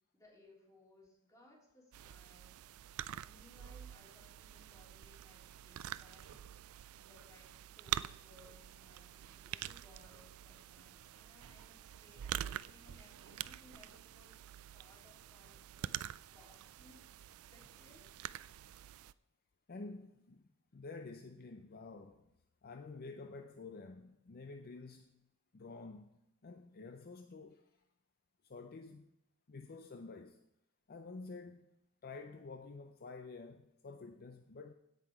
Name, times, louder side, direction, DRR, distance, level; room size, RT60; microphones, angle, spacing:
voice 1, 0.1-2.6 3.1-6.4 7.0-7.5 7.7-15.9 16.3-17.1 17.5-18.1, left 2 dB, 15° left, 3.3 m, -64 dB
sound 1, 1.9-19.1, right 12 dB, 70° right, 0.3 m, -46 dB
voice 2, 19.7-20.4 20.7-22.2 22.6-25.2 25.5-27.6 28.4-29.1 29.5-30.4 30.9-31.7 32.0-34.7, left 3 dB, 45° left, 0.5 m, -50 dB
16.5 x 5.8 x 4.7 m
head